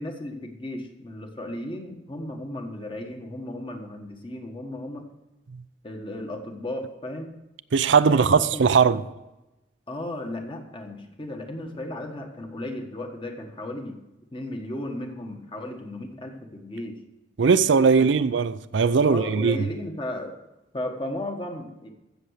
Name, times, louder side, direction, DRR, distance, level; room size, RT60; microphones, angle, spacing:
voice 1, 0.0-5.0 5.8-7.3 8.1-9.0 9.9-14.0 14.3-17.0 18.0-18.2 19.0-20.3 20.7-21.9, left 1 dB, 25° left, 1.4 m, -35 dB
voice 2, 7.7-9.0 17.4-19.7, right 5 dB, 75° right, 0.5 m, -19 dB
15.0 x 6.9 x 6.4 m
head